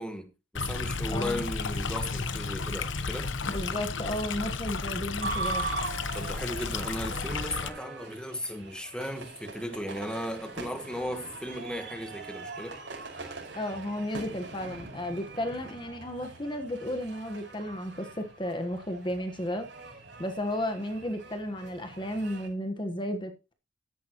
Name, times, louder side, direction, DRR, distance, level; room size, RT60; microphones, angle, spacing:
voice 1, 0.0-3.3 6.1-12.8, equal, 5° left, 1.4 m, -36 dB
Stream, 0.5-7.7, left 4 dB, 85° left, 1.0 m, -33 dB
voice 2, 1.1-1.4 3.5-5.7 13.5-19.7 20.2-23.5, left 1 dB, 25° left, 1.3 m, -33 dB
sound 1, 5.2-22.5, right 3 dB, 75° right, 5.6 m, -41 dB
13.5 x 10.5 x 3.0 m
head